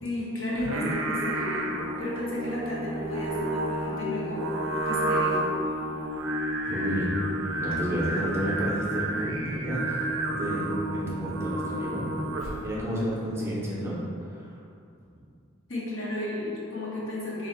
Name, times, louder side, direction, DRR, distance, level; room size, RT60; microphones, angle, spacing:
voice 1, 0.0-4.5 4.8-5.4 15.7-17.5, left 1 dB, 75° left, -6 dB, 0.9 m, -33 dB
Singing, 0.5-12.7, right 1 dB, 70° right, 0.4 m, -30 dB
voice 2, 6.7-7.1 7.5-12.1 12.6-14.0 14.3-14.4, equal, 15° right, -6 dB, 0.5 m, -31 dB
2.8 x 2.5 x 4.1 m, 2.4 s
head